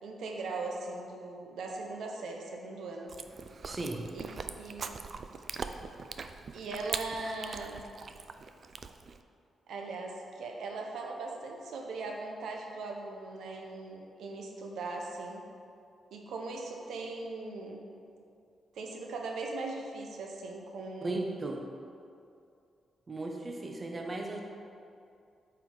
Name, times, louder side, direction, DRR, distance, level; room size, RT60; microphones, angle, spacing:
voice 1, 0.0-3.1 4.1-4.3 4.6-5.1 6.5-7.8 9.7-15.4 16.1-17.8 18.7-21.2, right 3 dB, 85° right, 1 dB, 0.8 m, -39 dB
Chewing mastication, 3.1-9.2, right 5 dB, 50° right, 0.3 m, -42 dB
voice 2, 3.6-4.1 21.0-21.6 23.1-24.4, right 2 dB, 30° right, 1 dB, 0.7 m, -36 dB
8.3 x 4.6 x 3.8 m, 2.5 s
cardioid pair, 110°, 0 cm